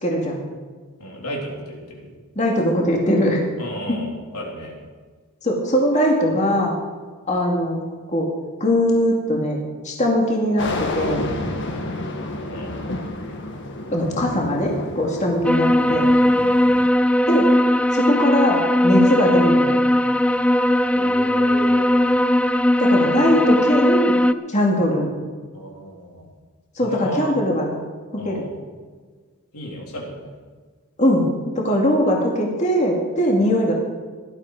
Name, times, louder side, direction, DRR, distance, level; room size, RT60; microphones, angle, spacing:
voice 1, 0.0-0.4 2.4-3.4 3.9-4.0 5.4-6.7 7.3-7.8 8.1-8.3 8.6-11.2 13.9-16.1 17.3-17.5 17.9-19.8 22.8-24.1 24.5-25.1 26.8-27.7 28.1-28.4 31.0-33.7, equal, 30° left, -1 dB, 2.3 m, -20 dB
voice 2, 1.0-2.1 3.6-4.8 12.5-12.7 16.4-16.6 20.9-22.1 25.5-26.3 26.8-27.3 28.2-28.5 29.5-30.4, equal, 85° left, -1 dB, 3.6 m, -34 dB
sound 1, 10.6-16.9, left 2 dB, 55° left, 1.8 m, -30 dB
sound 2, 15.4-24.3, left 1 dB, 5° left, 0.3 m, -18 dB
17.5 x 12.0 x 4.9 m, 1.5 s
head